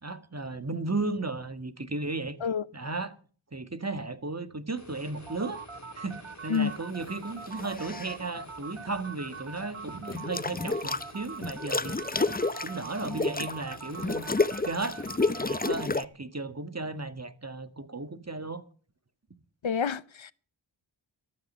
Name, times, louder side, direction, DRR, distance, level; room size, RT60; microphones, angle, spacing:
voice 1, 0.0-2.4 2.7-3.1 3.5-5.6 5.9-12.3 12.6-14.2 14.6-15.0 15.4-18.6, right 3 dB, 35° right, 1.7 m, -35 dB
sound 1, 4.8-15.5, left 2 dB, 35° left, 4.0 m, -50 dB
sound 2, 5.3-15.9, right 6 dB, 85° right, 1.2 m, -43 dB
sound 3, 7.5-8.2 10.1-11.1 11.4-16.1, left 3 dB, 20° left, 0.7 m, -30 dB
voice 2, 19.6-20.3, left 7 dB, 70° left, 0.8 m, -28 dB
14.5 x 12.5 x 5.5 m
wide cardioid pair, 45°, 48 cm